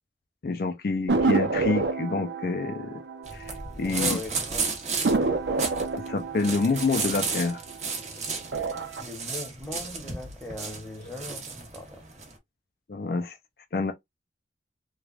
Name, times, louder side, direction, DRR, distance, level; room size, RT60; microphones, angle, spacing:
voice 1, 0.4-3.0 3.3-4.2 6.1-7.6 12.9-13.4 13.7-13.9, left 3 dB, 55° left, 0.4 m, -27 dB
sound 1, 1.1-4.1 4.4-4.5 5.0-8.0 8.4-9.0, right 3 dB, 80° right, 0.6 m, -28 dB
sound 2, 3.2-12.3, right 4 dB, 40° right, 0.9 m, -33 dB
voice 2, 3.8-4.6 9.0-12.0, left 3 dB, 5° left, 1.0 m, -39 dB
3.2 x 2.2 x 2.4 m
head